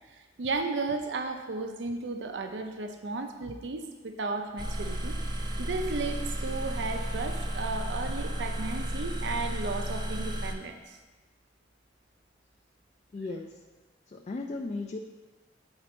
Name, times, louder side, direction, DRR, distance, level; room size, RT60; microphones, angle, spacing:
voice 1, 0.1-5.2 5.6-11.0, right 3 dB, 75° right, 6 dB, 0.5 m, -34 dB
sound 1, 4.6-10.5, equal, 25° right, 0.6 m, -33 dB
voice 2, 13.1-13.6 14.1-15.0, left 3 dB, 40° left, 3 dB, 0.3 m, -36 dB
8.8 x 4.0 x 4.3 m, 1.3 s
head